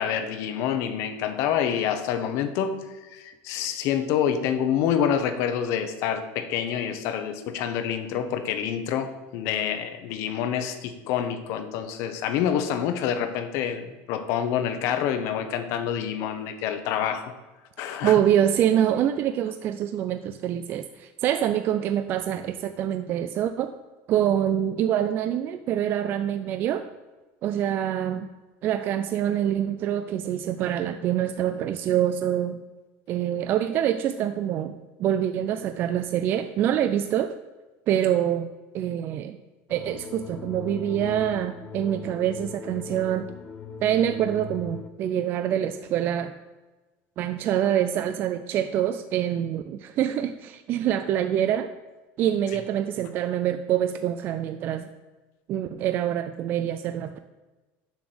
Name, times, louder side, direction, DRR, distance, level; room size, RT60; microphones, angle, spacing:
voice 1, 0.0-2.8 3.1-17.3 17.8-18.2, left 9 dB, 55° left, 9 dB, 1.0 m, -27 dB
voice 2, 18.0-23.7 24.1-26.8 27.4-28.3 28.6-32.6 33.1-37.4 37.9-38.5 38.7-39.4 39.7-43.3 43.8-46.3 47.2-51.7 52.2-54.9 55.5-57.2, right 10 dB, 35° right, 9 dB, 0.4 m, -25 dB
sound 1, 39.7-44.9, left 7 dB, 25° left, 0.6 m, -39 dB
7.1 x 6.1 x 7.7 m, 1.2 s
cardioid pair, 170°, 6 cm